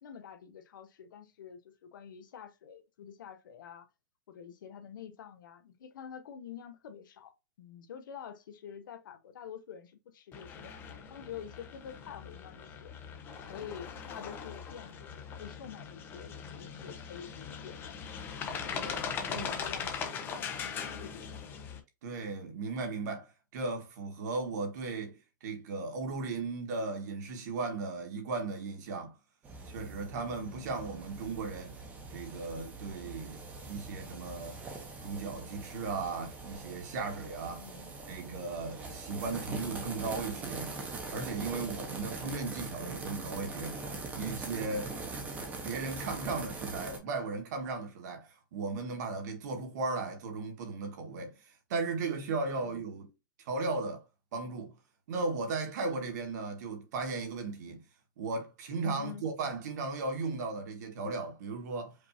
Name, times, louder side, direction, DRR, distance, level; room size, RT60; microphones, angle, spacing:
voice 1, 0.0-3.9 4.3-10.7 11.1-13.0 13.5-18.0 18.7-21.3 30.4-30.7 37.5-38.0 52.6-52.9 58.9-59.2, left 8 dB, 75° left, 0.9 m, -48 dB
sound 1, 10.3-21.8, left 6 dB, 20° left, 0.6 m, -40 dB
voice 2, 22.0-29.1 29.7-31.7 32.1-33.4 33.7-34.6 35.0-37.6 38.1-40.8 41.1-43.8 44.1-44.9 45.6-53.1 53.4-54.0 54.3-54.7 55.1-57.8 58.2-61.9, right 3 dB, 60° right, 1.5 m, -36 dB
sound 2, 29.4-47.0, right 3 dB, 15° right, 0.9 m, -42 dB
5.2 x 2.7 x 2.8 m
supercardioid pair, 160°, 11 cm